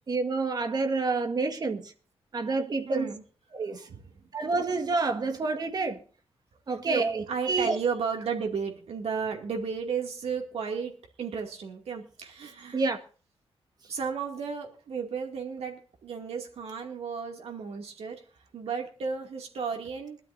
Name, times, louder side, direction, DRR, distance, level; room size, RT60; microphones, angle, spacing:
voice 1, 0.1-1.9 2.3-3.1 3.5-3.9 4.3-6.0 6.7-7.8 12.7-13.0, right 3 dB, 40° right, 1.7 m, -28 dB
voice 2, 2.9-3.2 3.6-4.2 6.7-12.8 13.9-18.2 18.5-20.2, right 6 dB, 80° right, 2.5 m, -34 dB
21.5 x 12.5 x 2.7 m
wide cardioid pair, 165°, 10 cm